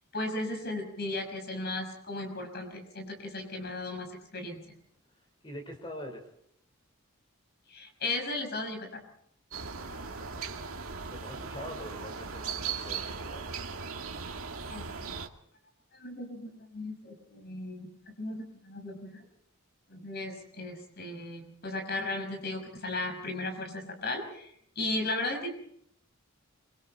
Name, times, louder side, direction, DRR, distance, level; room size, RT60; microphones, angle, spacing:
voice 1, 0.1-4.8 7.7-9.0 14.7-15.2 15.9-19.2 19.9-24.5 24.8-25.5, left 2 dB, 50° left, 4 dB, 6.1 m, -36 dB
voice 2, 5.4-6.3 9.8-10.5 11.1-13.7, left 1 dB, 25° left, 3 dB, 5.0 m, -44 dB
sound 1, 9.5-15.3, right 5 dB, 80° right, 2.1 m, -38 dB
27.0 x 25.0 x 4.5 m, 0.70 s
head